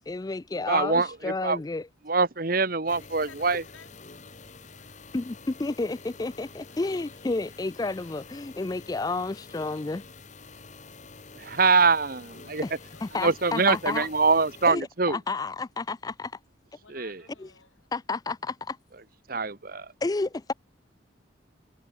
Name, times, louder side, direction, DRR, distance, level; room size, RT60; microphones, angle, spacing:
voice 1, 0.1-1.9 5.1-10.0 12.6-12.7 13.0-14.1 14.6-16.4 17.4-17.5 17.9-18.8 20.0-20.5, left 3 dB, 20° left, 0.3 m, -31 dB
voice 2, 0.7-1.6 2.1-3.6 11.3-12.6 13.2-15.2 16.9-17.2 19.3-19.9, right 4 dB, 45° right, 1.2 m, -24 dB
voice 3, 2.8-3.9 4.4-5.3 6.6-6.8 7.1-7.2 7.6-8.3 12.7-13.8 16.8-17.8, left 4 dB, 85° left, 6.9 m, -55 dB
sound 1, 2.9-14.7, left 4 dB, 40° left, 1.7 m, -48 dB
head